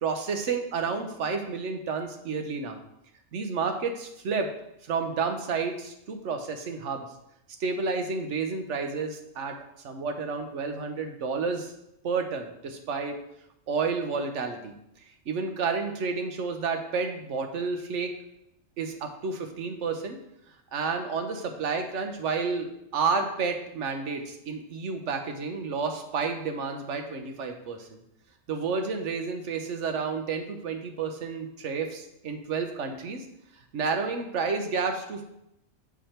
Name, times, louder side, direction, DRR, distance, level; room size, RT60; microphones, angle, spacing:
voice 1, 0.0-2.8 3.3-4.5 4.8-7.0 7.6-9.6 9.8-11.7 12.0-13.1 13.7-14.7 15.3-18.1 18.8-20.2 20.7-22.7 22.9-28.0 28.5-33.2 33.7-35.2, right 5 dB, 70° right, 5 dB, 1.2 m, -30 dB
7.2 x 4.9 x 4.4 m, 0.81 s
omnidirectional pair, 1.3 m